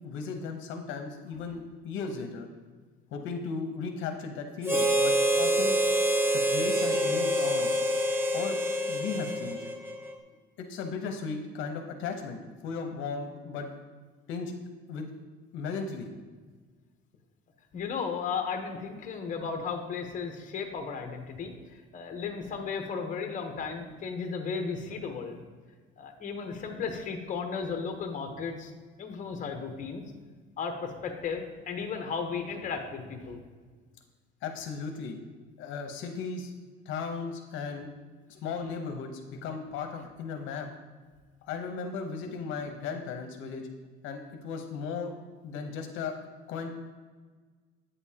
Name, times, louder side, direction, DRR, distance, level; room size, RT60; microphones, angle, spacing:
voice 1, 0.0-2.5 3.1-5.8 6.3-7.7 8.3-8.6 8.9-9.7 10.6-13.7 14.3-14.5 14.9-15.1 15.5-16.1 34.4-35.2 35.6-36.5 36.9-37.9 38.3-40.7 41.4-43.7 44.0-45.1 45.4-46.2 46.5-46.7, left 5 dB, 70° left, 4 dB, 0.9 m, -36 dB
Harmonica, 4.6-10.1, right 1 dB, 10° right, 0.7 m, -26 dB
voice 2, 17.7-21.5 21.9-25.4 26.0-28.7 29.0-30.0 30.6-33.4, left 5 dB, 40° left, 4 dB, 1.0 m, -35 dB
8.7 x 6.9 x 2.8 m, 1.4 s
cardioid pair, 130°, 21 cm